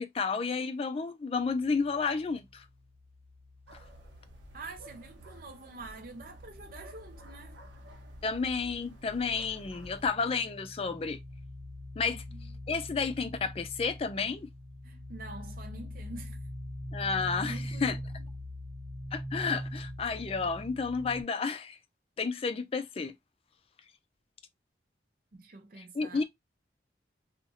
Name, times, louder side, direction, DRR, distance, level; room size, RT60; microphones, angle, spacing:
voice 1, 0.0-2.7 8.2-11.2 12.0-12.2 12.7-14.5 16.9-18.0 19.1-21.8 22.2-23.1 25.8-26.2, left 5 dB, 30° left, 0.3 m, -31 dB
sound 1, 1.3-5.2 5.4-21.2, equal, 10° left, 1.0 m, -44 dB
sound 2, 3.7-10.1, right 1 dB, 90° right, 0.7 m, -51 dB
voice 2, 4.5-7.6 12.0-12.5 14.8-16.4 17.4-18.0 25.3-26.2, right 2 dB, 50° right, 0.5 m, -46 dB
2.6 x 2.5 x 2.6 m
head